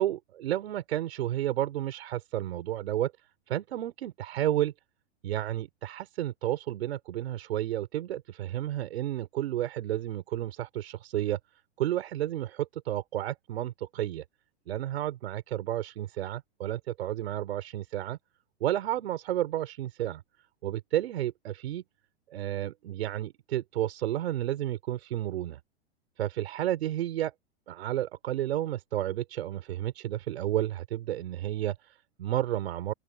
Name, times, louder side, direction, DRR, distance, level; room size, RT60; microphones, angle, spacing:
voice 1, 0.0-3.1 3.5-4.7 5.2-11.4 11.8-14.2 14.7-18.2 18.6-20.2 20.6-21.8 22.3-25.6 26.2-27.3 27.7-32.9, right 13 dB, 70° right, 5.4 m, -31 dB
open air
hypercardioid pair, 110°, 33 cm